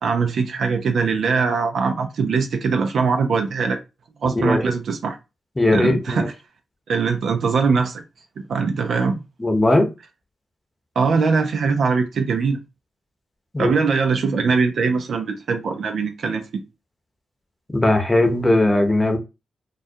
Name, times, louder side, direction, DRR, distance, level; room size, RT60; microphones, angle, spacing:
voice 1, 0.0-3.8 4.2-5.2 5.7-6.3 6.9-8.0 8.5-9.2 11.0-12.6 13.6-16.5, right 5 dB, 70° right, 0.4 m, -21 dB
voice 2, 5.6-6.3 9.4-9.9 13.5-13.7 17.7-19.2, left 2 dB, 20° left, 0.8 m, -18 dB
2.3 x 2.2 x 2.6 m
supercardioid pair, 40°, 0 cm